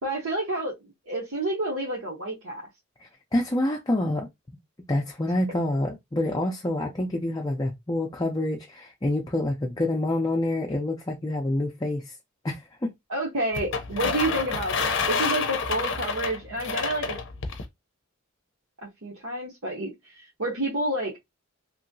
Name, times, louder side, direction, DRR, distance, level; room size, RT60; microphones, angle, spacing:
voice 1, 0.0-2.6 13.1-17.2 18.8-21.2, right 1 dB, 70° right, 1.1 m, -29 dB
voice 2, 3.3-4.3 4.9-12.1 12.4-12.9, left 1 dB, 20° left, 0.5 m, -27 dB
sound 1, 13.5-17.7, left 5 dB, 60° left, 0.6 m, -28 dB
3.0 x 2.7 x 2.6 m
head